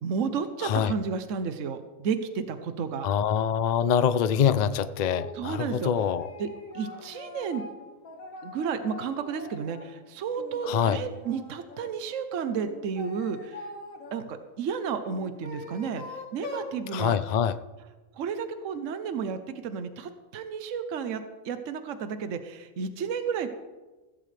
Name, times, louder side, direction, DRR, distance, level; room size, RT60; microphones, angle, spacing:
voice 1, 0.0-3.1 5.3-5.9 6.4-6.5 6.7-7.6 8.4-13.7 14.1-17.2 18.1-23.5, right 6 dB, 65° right, 9 dB, 1.2 m, -32 dB
voice 2, 0.6-0.9 3.0-6.3 10.6-11.0 16.9-17.6, left 8 dB, 90° left, 13 dB, 0.3 m, -25 dB
sound 1, 5.0-5.4 5.9-9.9 10.3-11.9 12.6-14.2 15.1-16.8, left 2 dB, 70° left, 2.2 m, -42 dB
15.5 x 14.5 x 3.3 m, 1.2 s
omnidirectional pair, 1.4 m